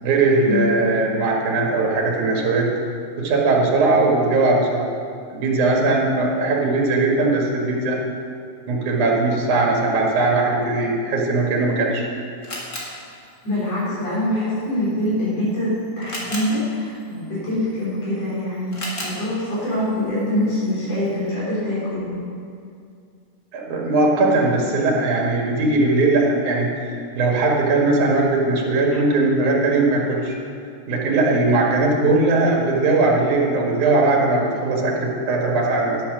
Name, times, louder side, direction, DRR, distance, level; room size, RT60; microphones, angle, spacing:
voice 1, 0.0-2.7 3.2-4.9 5.3-8.0 8.7-12.1 23.5-30.4 30.9-36.0, right 3 dB, 85° right, -1 dB, 3.1 m, -19 dB
Camera, 11.5-21.3, left 1 dB, 35° left, 2.0 m, -38 dB
voice 2, 13.4-15.7 16.0-22.2, left 1 dB, 60° left, -8 dB, 4.6 m, -24 dB
10.0 x 8.5 x 6.1 m, 2.4 s
omnidirectional pair, 3.4 m